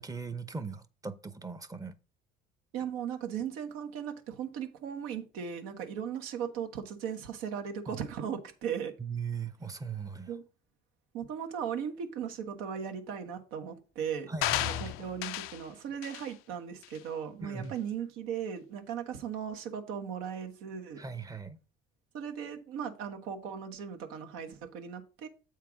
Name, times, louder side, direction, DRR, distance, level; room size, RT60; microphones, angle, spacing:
voice 1, 0.0-1.9 7.9-8.0 9.0-10.3 14.3-14.9 17.4-17.7 21.0-21.6, right 5 dB, 15° right, 0.7 m, -39 dB
voice 2, 2.7-8.9 10.3-10.4 11.1-14.3 14.6-21.0 22.1-25.3, right 8 dB, 85° right, 1.2 m, -37 dB
sound 1, 14.4-15.6 16.0-16.3 16.8-17.0, left 15 dB, 80° left, 0.5 m, -33 dB
7.4 x 4.5 x 4.9 m
cardioid pair, 105°, 21 cm